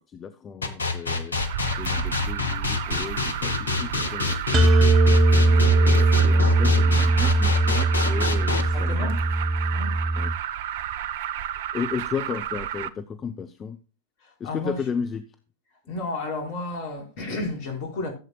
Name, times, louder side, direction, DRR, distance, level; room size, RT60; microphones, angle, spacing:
voice 1, 0.1-4.7 5.4-9.2 10.2-10.3 11.7-13.8 14.4-15.2, left 6 dB, 25° left, 0.8 m, -34 dB
sound 1, 0.6-8.6, left 4 dB, 75° left, 1.4 m, -26 dB
Alarm, 1.3-12.9, right 11 dB, 55° right, 0.7 m, -32 dB
sound 2, 4.5-10.3, right 2 dB, 25° right, 1.4 m, -20 dB
voice 2, 8.7-9.2 9.7-9.9 14.2-14.8 15.9-18.1, left 2 dB, 45° left, 4.8 m, -32 dB
14.5 x 8.3 x 2.3 m
figure-of-eight pair, 90°, 0 cm